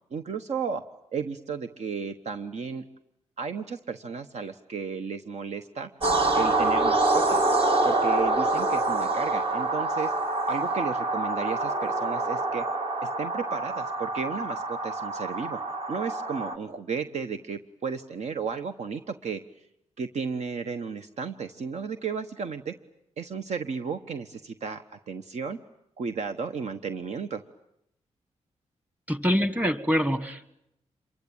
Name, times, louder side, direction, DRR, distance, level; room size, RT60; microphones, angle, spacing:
voice 1, 0.1-0.8 1.1-2.8 3.4-5.9 6.3-7.5 7.8-10.1 10.5-12.6 13.0-15.6 15.9-19.4 20.0-22.7 23.2-25.6 26.0-27.4, right 5 dB, 70° right, 8 dB, 1.2 m, -33 dB
sound 1, 6.0-16.5, right 2 dB, 45° right, 2.4 m, -26 dB
voice 2, 29.1-30.6, equal, 10° right, 12 dB, 1.7 m, -25 dB
27.0 x 23.5 x 8.9 m, 0.80 s
cardioid pair, 95°, 12 cm